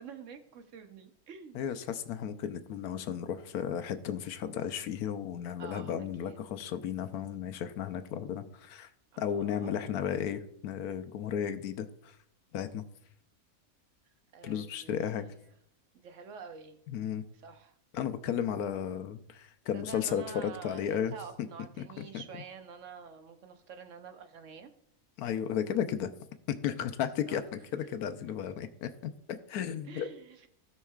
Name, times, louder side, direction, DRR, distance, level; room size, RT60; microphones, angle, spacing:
voice 1, 0.0-1.6 5.6-5.9 6.2-6.4 9.1-9.7 14.3-15.4 15.9-16.8 17.4-17.7 19.7-24.7 27.3-27.4 29.8-30.5, right 6 dB, 60° right, 8 dB, 1.1 m, -48 dB
voice 2, 1.5-8.9 9.2-12.2 12.5-12.8 14.4-15.2 16.9-17.2 17.9-21.2 21.8-22.2 25.2-26.1 26.5-29.1 29.5-30.1, left 8 dB, 80° left, 10 dB, 1.2 m, -34 dB
16.0 x 5.5 x 2.4 m, 0.69 s
omnidirectional pair, 1.6 m